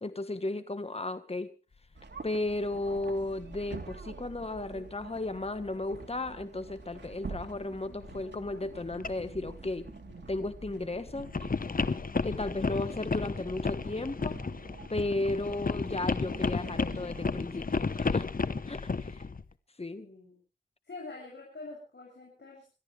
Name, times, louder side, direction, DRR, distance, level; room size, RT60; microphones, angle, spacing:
voice 1, 0.0-1.5 2.2-9.9 10.3-11.5 12.2-14.3 14.9-18.3 18.7-19.2 19.8-20.1, left 2 dB, 35° left, 11 dB, 1.6 m, -34 dB
sound 1, 1.9-17.5, right 4 dB, 70° right, 2.9 m, -47 dB
sound 2, 2.2-2.3 3.0-3.5 3.9-4.0 6.0-6.1 6.9-19.5, left 4 dB, 50° left, 1.0 m, -33 dB
voice 2, 20.0-20.4 20.8-22.8, left 3 dB, 70° left, -3 dB, 7.8 m, -46 dB
28.5 x 13.5 x 3.5 m, 0.33 s
cardioid pair, 45°, 19 cm